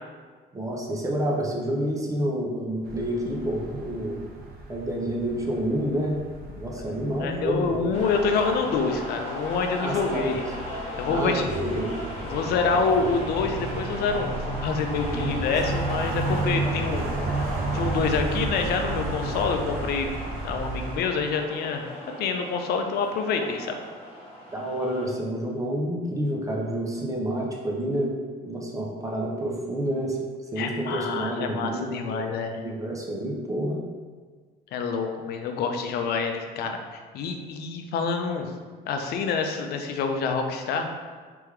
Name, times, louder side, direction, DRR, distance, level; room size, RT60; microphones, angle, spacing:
voice 1, 0.5-4.2 4.7-6.2 6.6-7.7 9.8-10.4 11.1-11.9 15.1-15.5 24.5-28.1 28.4-30.2 30.5-32.3 32.5-33.8, right 1 dB, 20° right, -2 dB, 0.7 m, -29 dB
sound 1, 2.8-21.0, right 2 dB, 65° right, 0.7 m, -33 dB
voice 2, 7.2-10.4 11.0-11.4 12.2-17.1 17.7-20.1 20.4-21.8 22.2-23.7 30.6-32.6 34.7-38.5 38.9-40.9, left 5 dB, 70° left, 5 dB, 0.5 m, -27 dB
sound 2, 7.9-25.1, equal, 40° left, 1.2 m, -37 dB
3.4 x 3.4 x 3.2 m, 1.5 s
cardioid pair, 110°, 17 cm